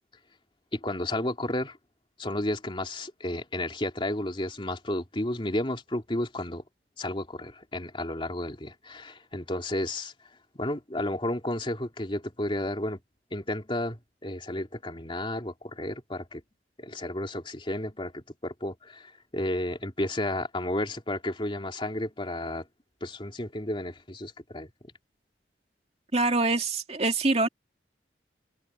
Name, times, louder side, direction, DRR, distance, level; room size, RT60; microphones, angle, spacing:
voice 1, 0.7-1.8 2.2-6.6 7.0-10.1 10.5-13.0 13.3-16.4 16.8-22.6 23.0-24.7, left 1 dB, 30° left, 3.0 m, -32 dB
voice 2, 26.1-27.5, right 3 dB, 35° right, 2.5 m, -24 dB
head